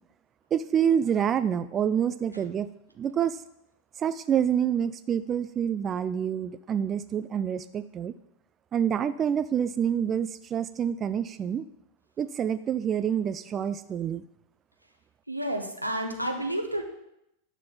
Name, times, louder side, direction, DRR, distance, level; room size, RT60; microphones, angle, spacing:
voice 1, 0.5-2.7 3.0-3.4 4.0-8.1 8.7-11.6 12.2-14.2, right 8 dB, 25° right, 12 dB, 0.3 m, -27 dB
voice 2, 15.3-16.8, right 1 dB, 90° right, 3 dB, 1.1 m, -30 dB
11.0 x 4.1 x 7.2 m, 0.84 s
figure-of-eight pair, 90°, 0 cm